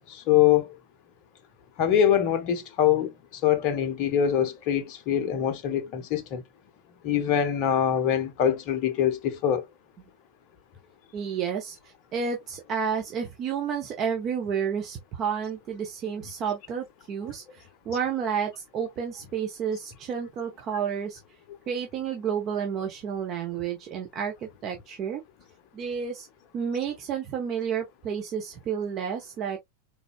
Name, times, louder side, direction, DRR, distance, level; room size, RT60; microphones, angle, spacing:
voice 1, 0.1-0.7 1.8-6.4 7.0-9.6, left 10 dB, 40° left, 0.7 m, -24 dB
voice 2, 11.1-11.8 12.1-21.2 21.7-25.2 25.7-26.3 26.5-29.6, right 7 dB, 35° right, 0.9 m, -31 dB
3.9 x 3.5 x 2.3 m
figure-of-eight pair, 90°, 0 cm